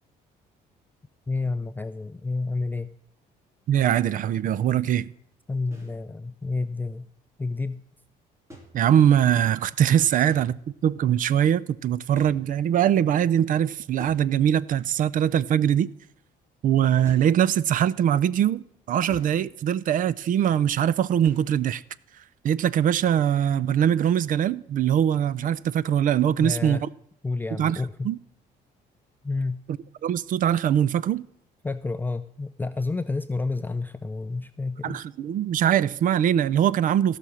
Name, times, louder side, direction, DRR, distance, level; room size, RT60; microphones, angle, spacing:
voice 1, 1.3-2.9 5.5-7.1 7.4-7.8 10.1-10.3 26.3-26.8 27.2-28.1 29.2-29.6 31.6-35.0, left 3 dB, 10° left, 0.4 m, -30 dB
voice 2, 3.7-5.1 8.7-15.9 16.6-21.8 22.4-26.9 27.6-27.8 28.0-28.2 30.0-31.3 34.8-37.2, right 9 dB, 50° right, 0.5 m, -22 dB
sound 1, 5.7-6.0 8.5-9.3 10.3-10.9 12.1-12.9 14.0-14.8 17.0-17.5 19.1-19.6 21.2-21.7 24.0-24.2, right 1 dB, 15° right, 3.3 m, -47 dB
16.0 x 6.0 x 6.2 m
cardioid pair, 110°, 17 cm